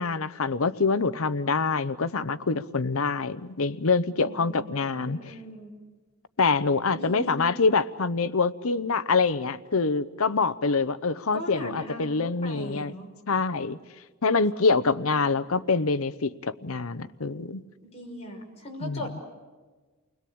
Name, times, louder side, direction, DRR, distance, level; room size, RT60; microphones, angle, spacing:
voice 1, 0.0-5.2 6.4-12.9 13.3-13.8 14.2-17.6 18.8-19.0, left 4 dB, 70° left, 14 dB, 0.8 m, -25 dB
voice 2, 4.1-5.7 6.9-7.4 11.3-13.1 14.7-15.1 17.8-19.1, left 1 dB, 30° left, -1 dB, 5.9 m, -39 dB
30.0 x 21.5 x 8.6 m, 1.3 s
head